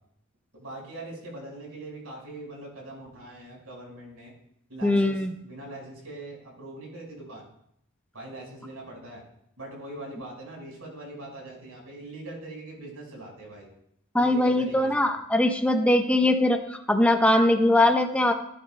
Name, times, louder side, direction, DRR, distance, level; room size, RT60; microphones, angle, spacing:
voice 1, 0.5-4.3 4.7-7.4 8.1-9.2 9.6-13.7 14.2-15.0, right 1 dB, 80° right, -1 dB, 5.1 m, -42 dB
voice 2, 4.8-5.3 14.1-18.3, left 1 dB, 5° left, 5 dB, 0.8 m, -21 dB
17.0 x 10.0 x 2.2 m, 0.74 s
head